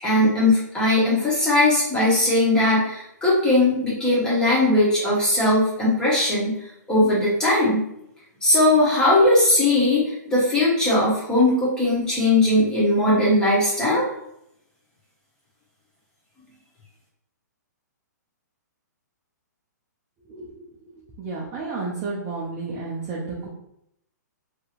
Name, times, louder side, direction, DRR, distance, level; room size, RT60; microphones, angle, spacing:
voice 1, 0.0-6.5 6.9-7.8 8.4-14.1, left 1 dB, 5° left, -7 dB, 0.8 m, -19 dB
voice 2, 20.3-20.6 21.2-23.5, right 3 dB, 15° right, -5 dB, 0.3 m, -31 dB
2.8 x 2.7 x 2.4 m, 0.77 s
hypercardioid pair, 165°, 10 cm